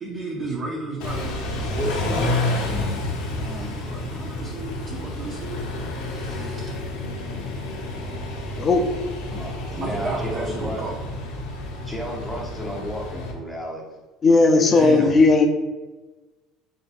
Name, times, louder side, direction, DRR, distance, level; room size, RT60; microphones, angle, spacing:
voice 1, 0.0-2.9 3.4-5.7 6.0-6.7 9.3-9.5 9.7-10.9 14.7-15.2, right 3 dB, 30° right, -2 dB, 0.6 m, -33 dB
Car / Idling / Accelerating revving vroom, 1.0-13.3, left 2 dB, 80° left, 0.9 m, -30 dB
voice 2, 9.4-10.8 11.8-13.8, equal, ahead, -4 dB, 0.8 m, -33 dB
voice 3, 14.2-15.5, left 3 dB, 25° left, 4 dB, 0.5 m, -16 dB
3.8 x 3.8 x 2.5 m, 1.2 s
cardioid pair, 140°, 0 cm